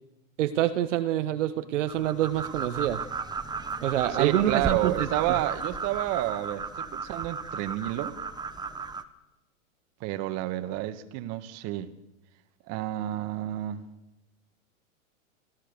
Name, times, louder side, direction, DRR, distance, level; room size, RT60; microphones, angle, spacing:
voice 1, 0.4-3.0 3.8-5.1, right 12 dB, 60° right, 1.4 m, -26 dB
sound 1, 1.9-9.0, right 5 dB, 10° right, 1.1 m, -35 dB
voice 2, 4.2-8.1 10.0-11.9 12.7-13.8, right 14 dB, 40° right, 1.7 m, -30 dB
29.5 x 15.5 x 6.9 m
hypercardioid pair, 115°, 41 cm